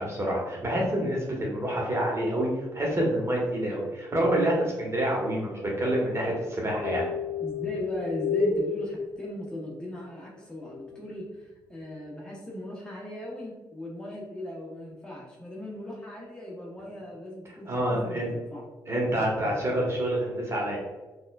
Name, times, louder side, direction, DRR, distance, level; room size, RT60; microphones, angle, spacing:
voice 1, 0.0-7.1 17.7-18.3 18.9-20.8, right 1 dB, 30° right, -2 dB, 1.3 m, -27 dB
sound 1, 6.8-9.7 10.6-11.1, left 4 dB, 50° left, 0.8 m, -30 dB
voice 2, 7.4-18.7, left 1 dB, 10° left, -4 dB, 0.9 m, -38 dB
4.1 x 2.5 x 2.3 m, 1.2 s
hypercardioid pair, 45°, 10 cm